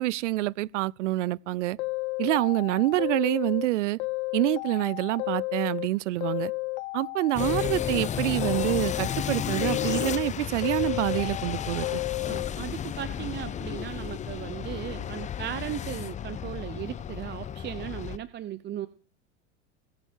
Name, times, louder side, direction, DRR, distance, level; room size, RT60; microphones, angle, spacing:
voice 1, 0.0-1.8 2.2-4.0 4.3-6.5 6.9-12.0, right 17 dB, 80° right, 0.5 m, -27 dB
sound 1, 1.8-3.7 4.0-5.9 6.2-8.1 8.4-10.3 10.6-12.5, left 24 dB, 65° left, 0.6 m, -32 dB
sound 2, 7.4-18.2, left 9 dB, 20° left, 0.6 m, -33 dB
voice 2, 12.3-18.9, right 11 dB, 30° right, 0.8 m, -37 dB
20.5 x 8.1 x 4.6 m
hypercardioid pair, 105°, 36 cm